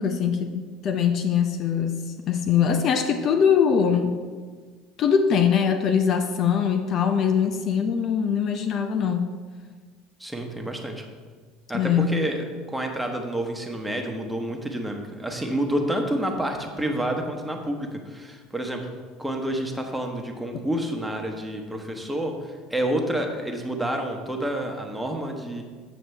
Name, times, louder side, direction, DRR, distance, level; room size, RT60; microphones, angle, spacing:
voice 1, 0.0-4.1 5.0-9.2 11.7-12.1, left 7 dB, 50° left, 6 dB, 0.6 m, -22 dB
voice 2, 10.2-11.0 11.7-25.6, right 1 dB, 5° right, 2 dB, 1.2 m, -29 dB
8.0 x 6.4 x 3.4 m, 1.5 s
hypercardioid pair, 70°, 0 cm